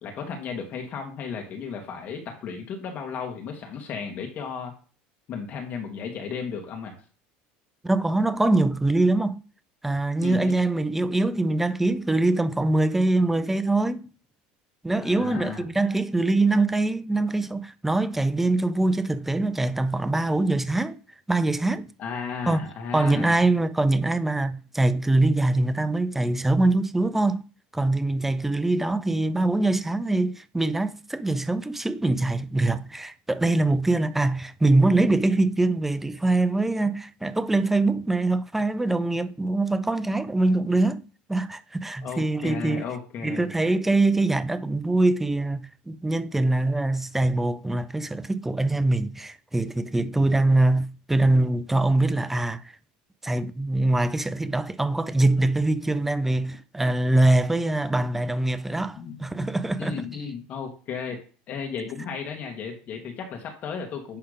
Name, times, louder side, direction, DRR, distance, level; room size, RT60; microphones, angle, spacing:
voice 1, 0.0-4.7 5.3-7.0 10.2-10.6 15.0-15.6 22.0-23.4 42.0-43.5 59.0-59.5 59.8-61.2 61.5-64.2, left 6 dB, 45° left, 1.8 m, -34 dB
voice 2, 7.8-9.4 9.8-14.1 14.8-21.0 21.3-21.9 22.5-22.6 22.9-27.4 27.7-41.0 41.3-42.8 43.2-52.6 53.2-60.0, right 2 dB, 5° right, 0.5 m, -23 dB
10.5 x 3.5 x 5.1 m
supercardioid pair, 125°, 4 cm